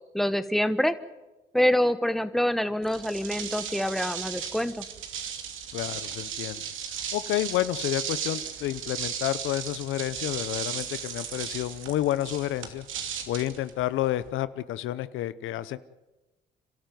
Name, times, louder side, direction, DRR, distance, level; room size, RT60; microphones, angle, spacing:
voice 1, 0.1-0.9 1.5-4.8, left 1 dB, ahead, 12 dB, 1.3 m, -26 dB
sound 1, 2.8-14.3, right 8 dB, 80° right, 2.7 m, -36 dB
voice 2, 5.7-6.6 7.1-12.9 13.3-15.8, left 13 dB, 85° left, 15 dB, 0.8 m, -30 dB
29.0 x 13.0 x 9.3 m, 1.1 s
cardioid pair, 90°, 20 cm